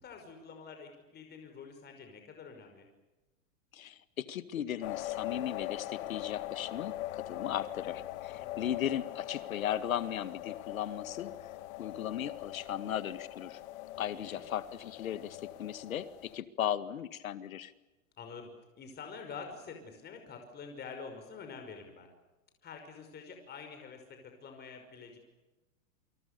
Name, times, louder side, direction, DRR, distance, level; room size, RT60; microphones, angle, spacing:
voice 1, 0.0-2.9 8.4-8.7 14.0-14.5 18.2-18.5 18.8-22.1 22.6-25.2, left 5 dB, 25° left, 5 dB, 5.6 m, -47 dB
voice 2, 3.7-11.3 11.8-13.6 14.0-17.7, left 10 dB, 90° left, 13 dB, 2.0 m, -37 dB
sound 1, 4.8-16.4, left 15 dB, 55° left, 2.1 m, -42 dB
29.0 x 25.0 x 6.9 m, 1.1 s
hypercardioid pair, 135°, 40 cm